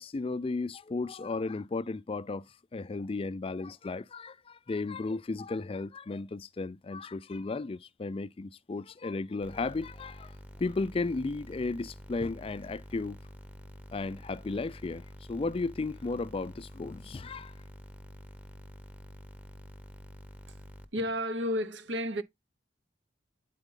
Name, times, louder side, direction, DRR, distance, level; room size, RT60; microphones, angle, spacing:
voice 1, 0.0-2.4 2.7-10.3 10.6-13.2 13.9-17.5, left 3 dB, 30° left, 0.4 m, -34 dB
sound 1, 9.4-20.9, equal, 10° right, 0.8 m, -48 dB
voice 2, 20.9-22.2, equal, 70° right, 0.9 m, -31 dB
9.0 x 4.2 x 3.6 m
head